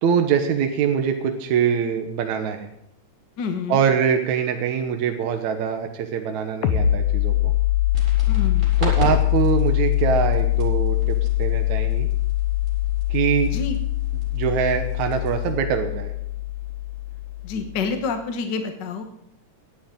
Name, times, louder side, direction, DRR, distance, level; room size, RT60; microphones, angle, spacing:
voice 1, 0.0-2.7 3.7-7.5 8.8-12.1 13.1-13.5 14.3-16.1, right 7 dB, 75° right, 5 dB, 2.5 m, -23 dB
voice 2, 3.4-3.8 8.3-8.7 13.5-13.8 17.4-19.0, left 5 dB, 50° left, 6 dB, 1.3 m, -28 dB
sound 1, 6.6-18.0, left 15 dB, 85° left, 2.4 m, -23 dB
sound 2, 7.9-15.5, equal, 10° right, 7.3 m, -38 dB
17.5 x 12.5 x 3.8 m, 0.77 s
omnidirectional pair, 3.4 m